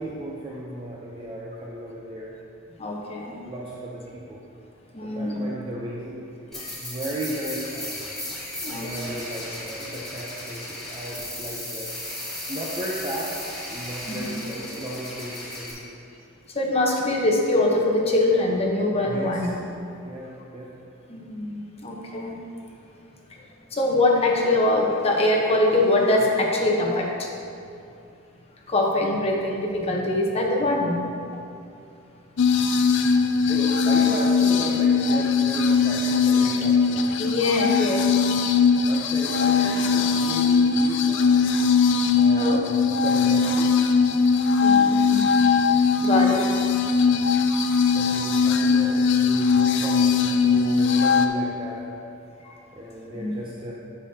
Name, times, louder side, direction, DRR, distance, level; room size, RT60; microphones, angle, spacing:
voice 1, 0.0-2.3 3.4-4.4 5.0-8.0 8.7-11.9 12.5-13.4 13.7-15.9 19.0-19.4 20.0-20.7 33.5-37.3 38.8-41.4 42.2-43.8 47.9-51.9 52.7-53.7, right 1 dB, 25° right, -4 dB, 0.6 m, -35 dB
voice 2, 2.8-3.4 4.9-5.5 6.5-6.7 8.6-8.9 14.0-14.4 16.5-19.5 21.1-22.4 23.3-27.3 28.7-31.0 33.3-33.4 37.2-38.1 42.3-42.6 42.9-43.0 44.6-45.3 46.0-46.5 52.4-52.6 53.1-53.3, left 2 dB, 30° left, -1 dB, 1.0 m, -23 dB
sound 1, 6.5-15.7, left 1 dB, ahead, 1.7 m, -35 dB
sound 2, 32.4-51.3, left 5 dB, 60° left, 0.5 m, -20 dB
10.0 x 6.9 x 2.8 m, 2.6 s
head